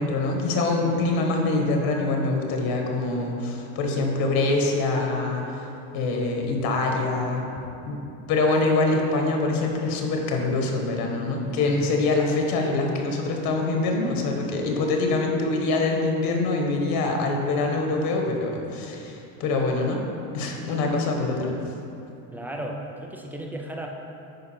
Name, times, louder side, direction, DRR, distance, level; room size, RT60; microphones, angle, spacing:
voice 1, 0.0-5.7 5.9-7.5 7.9-20.0 20.3-21.5, left 3 dB, 50° left, 1 dB, 1.4 m, -24 dB
voice 2, 22.3-23.9, right 1 dB, 5° right, 1 dB, 0.4 m, -34 dB
9.5 x 4.9 x 4.4 m, 2.8 s
supercardioid pair, 130°, 44 cm